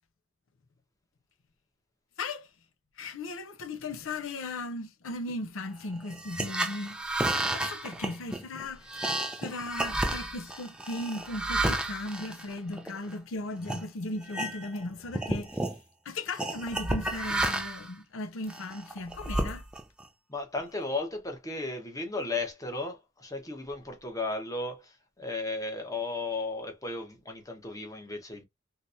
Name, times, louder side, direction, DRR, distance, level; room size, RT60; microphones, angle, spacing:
voice 1, 3.0-7.0 7.5-9.0 9.4-15.7 16.0-19.6, left 2 dB, 80° left, 0.6 m, -37 dB
sound 1, 6.1-13.1 13.6-13.8 14.2-14.9 15.1-15.8 16.4-17.9 18.5-20.0, right 1 dB, 5° right, 0.3 m, -32 dB
voice 2, 20.3-28.4, left 3 dB, 15° left, 0.9 m, -35 dB
3.2 x 2.9 x 2.5 m
head